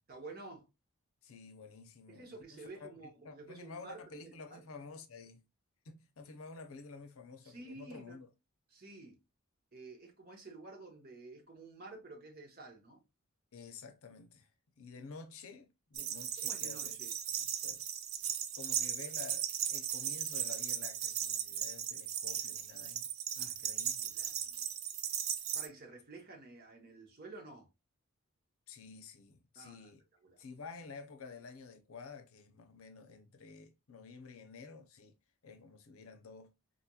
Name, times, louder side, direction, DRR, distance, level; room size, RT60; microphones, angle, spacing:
voice 1, 0.1-0.7 2.1-4.6 7.4-8.2 8.7-9.2 9.7-13.0 16.4-17.1 23.4-23.5 24.1-24.7 25.5-27.7 29.5-29.9 30.2-30.4, right 3 dB, 45° right, 1.0 m, -51 dB
voice 2, 1.2-2.9 3.2-5.4 5.8-8.3 13.5-14.5 14.8-17.0 17.6-17.8 18.6-24.1 28.7-30.0 30.4-35.1 35.4-36.5, left 4 dB, 85° left, 0.7 m, -51 dB
sound 1, 15.9-25.7, right 9 dB, 75° right, 0.5 m, -37 dB
4.0 x 3.0 x 2.3 m
head